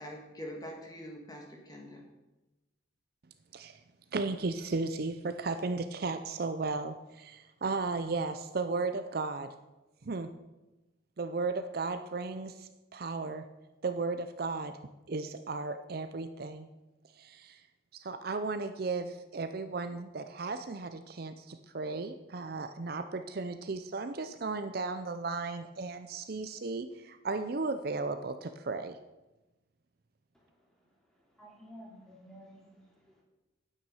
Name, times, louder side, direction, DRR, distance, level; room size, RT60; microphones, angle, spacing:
voice 1, 0.0-2.1, equal, 20° left, 1 dB, 1.8 m, -44 dB
voice 2, 4.1-9.5 10.0-10.3 11.2-13.5 13.8-14.8 15.1-16.7 17.2-17.6 17.9-29.0, right 3 dB, 50° right, 9 dB, 0.5 m, -35 dB
voice 3, 31.3-33.2, equal, 5° left, -3 dB, 2.7 m, -52 dB
9.2 x 8.9 x 5.6 m, 1.1 s
head